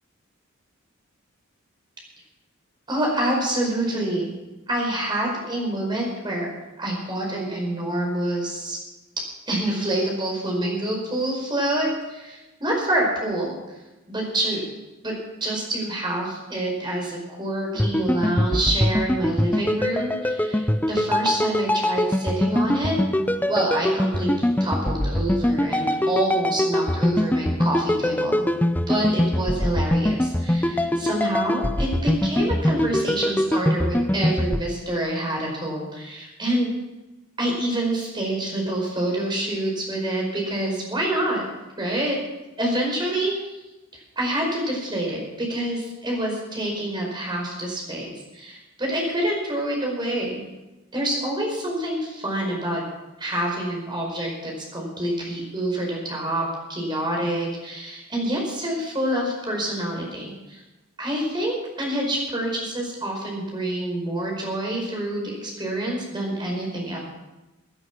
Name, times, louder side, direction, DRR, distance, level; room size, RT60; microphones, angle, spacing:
voice 1, 2.9-4.3 4.7-6.5 6.8-8.8 9.5-13.6 14.1-14.7 15.0-15.1 15.4-23.0 23.5-28.4 28.9-36.7 37.4-41.4 41.8-42.2 42.6-43.5 44.1-50.4 50.9-52.8 53.2-56.4 56.7-60.6 61.0-67.0, right 1 dB, 20° right, -1 dB, 4.9 m, -27 dB
sound 1, 17.8-34.6, left 1 dB, 10° left, 0.5 m, -23 dB
17.0 x 9.8 x 6.1 m, 1.0 s
head